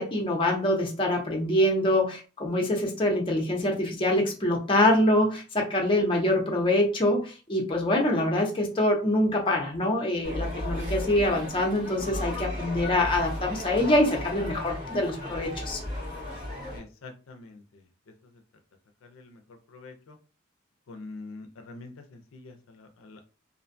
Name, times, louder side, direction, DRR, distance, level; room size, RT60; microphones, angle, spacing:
voice 1, 0.0-15.8, left 1 dB, 25° left, 0 dB, 0.6 m, -25 dB
sound 1, 10.2-16.8, left 1 dB, 40° right, 1.3 m, -35 dB
voice 2, 16.7-17.8 19.0-19.4 19.7-20.2 20.9-23.2, left 3 dB, 75° left, 5 dB, 0.4 m, -45 dB
2.5 x 2.1 x 2.5 m, 0.34 s
head